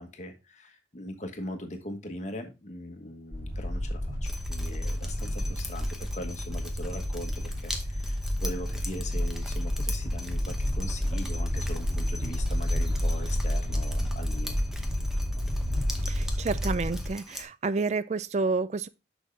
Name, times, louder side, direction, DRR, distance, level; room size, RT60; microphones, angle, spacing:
voice 1, 0.0-14.6, left 1 dB, 40° left, 1.2 m, -40 dB
sound 1, 3.3-17.1, equal, 20° right, 2.2 m, -30 dB
Drip, 4.2-17.4, left 1 dB, ahead, 0.8 m, -43 dB
voice 2, 16.1-18.9, right 4 dB, 35° right, 0.3 m, -29 dB
6.3 x 6.2 x 3.3 m
head